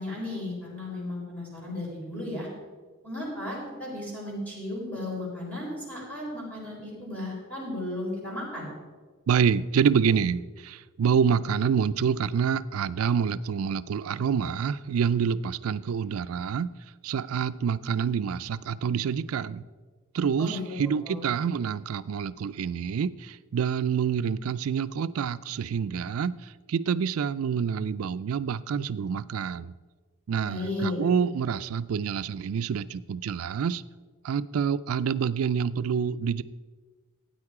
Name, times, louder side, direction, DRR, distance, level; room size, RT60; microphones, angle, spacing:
voice 1, 0.0-2.5 3.0-8.7 20.4-20.8 21.0-21.2 30.5-31.0, left 1 dB, 5° left, -5 dB, 4.2 m, -34 dB
voice 2, 9.3-16.7 17.0-19.6 20.1-26.3 26.7-29.7 30.3-33.8 34.2-36.4, right 7 dB, 80° right, 15 dB, 0.4 m, -27 dB
13.0 x 8.9 x 4.8 m, 1.4 s
head